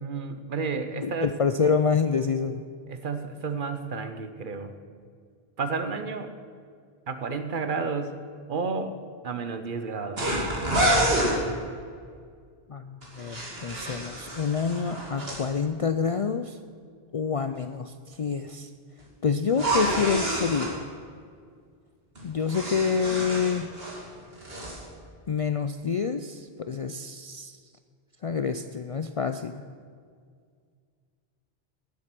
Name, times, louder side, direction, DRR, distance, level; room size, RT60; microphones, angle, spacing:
voice 1, 0.0-1.3 2.9-4.7 5.6-6.3 7.1-8.2 8.5-9.0 9.2-10.2, right 4 dB, 55° right, 9 dB, 1.0 m, -31 dB
voice 2, 1.0-2.6 12.7-16.6 17.1-18.7 19.2-20.8 22.2-23.7 25.3-27.6 28.2-29.6, left 6 dB, 50° left, 9 dB, 0.4 m, -27 dB
sound 1, 10.2-11.4 13.0-15.4 19.5-20.7 22.2-24.0 24.3-24.8, right 1 dB, 70° right, 2.9 m, -28 dB
18.0 x 7.7 x 6.0 m, 2.1 s
omnidirectional pair, 1.0 m